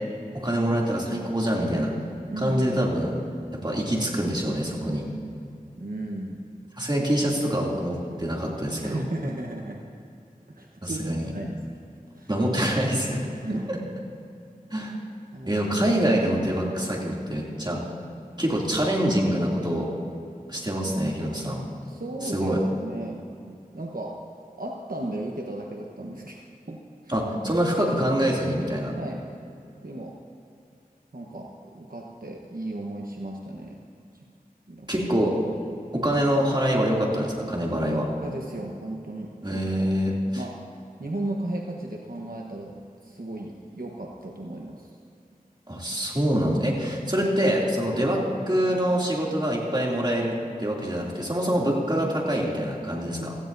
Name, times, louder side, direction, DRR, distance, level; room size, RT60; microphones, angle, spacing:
voice 1, 0.3-1.9 2.4-3.1 3.5-5.1 6.8-9.0 10.8-11.3 12.3-13.3 13.7-13.8 14.7-15.0 15.5-17.8 18.4-19.9 20.5-21.6 22.2-22.6 27.1-28.9 34.9-35.4 35.9-38.1 39.4-40.4 45.7-53.3, equal, 30° right, -3 dB, 2.7 m, -25 dB
voice 2, 2.3-2.8 5.8-6.5 8.8-9.8 10.5-11.6 12.2-12.3 13.1-13.7 15.3-15.5 21.8-22.5 22.8-24.2 24.6-26.4 26.7-27.1 27.4-27.6 29.0-29.3 29.8-30.1 31.1-33.8 34.7-34.9 35.5-35.7 37.7-39.9 40.3-40.5 41.0-42.7 43.0-44.9 47.0-47.1 53.2-53.3, right 1 dB, 75° right, -1 dB, 1.1 m, -35 dB
17.0 x 15.0 x 2.7 m, 2.5 s
wide cardioid pair, 40°, 15 cm